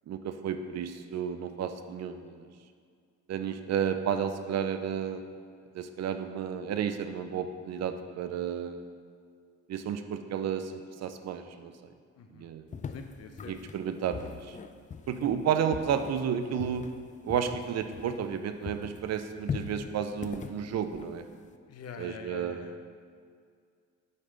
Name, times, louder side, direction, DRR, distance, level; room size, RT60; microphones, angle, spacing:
voice 1, 0.1-2.5 3.3-5.2 5.7-8.9 9.7-11.7 12.3-12.7 13.5-14.6 15.1-16.9 17.2-21.2 22.0-22.7, right 8 dB, 60° right, 9 dB, 0.5 m, -32 dB
voice 2, 12.2-12.5 12.9-13.5 21.7-22.9, left 6 dB, 55° left, 6 dB, 0.7 m, -45 dB
sound 1, 12.7-18.4 18.6-21.6, left 6 dB, 25° left, 0.4 m, -41 dB
8.3 x 3.3 x 5.1 m, 2.1 s
cardioid pair, 90°, 30 cm